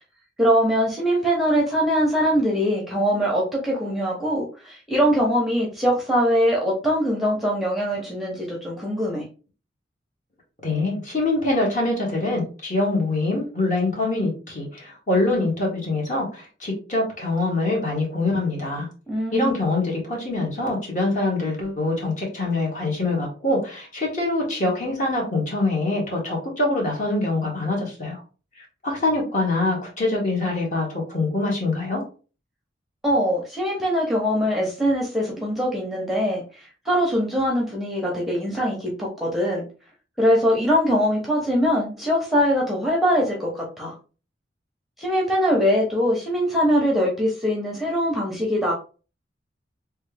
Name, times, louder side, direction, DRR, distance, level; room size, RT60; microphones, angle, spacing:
voice 1, 0.4-9.3 19.1-19.5 33.0-39.6 40.2-43.9 45.0-48.7, equal, ahead, -2 dB, 0.7 m, -22 dB
voice 2, 10.6-18.9 19.3-28.2 28.8-32.0, left 2 dB, 45° left, -2 dB, 1.4 m, -24 dB
3.2 x 2.3 x 3.3 m, 0.35 s
head